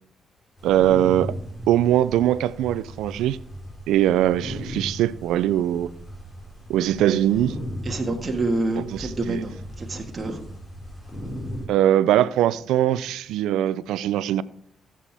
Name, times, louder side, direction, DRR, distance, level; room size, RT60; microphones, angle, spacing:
sound 1, 0.6-11.7, equal, 20° left, 5.3 m, -37 dB
voice 1, 0.6-1.3 1.7-3.4 3.9-5.9 6.7-7.6 9.3-9.4 11.7-14.4, right 12 dB, 85° right, 0.4 m, -21 dB
voice 2, 7.8-10.5, right 2 dB, 30° right, 1.7 m, -27 dB
15.5 x 7.5 x 3.5 m
cardioid pair, 90°, 0 cm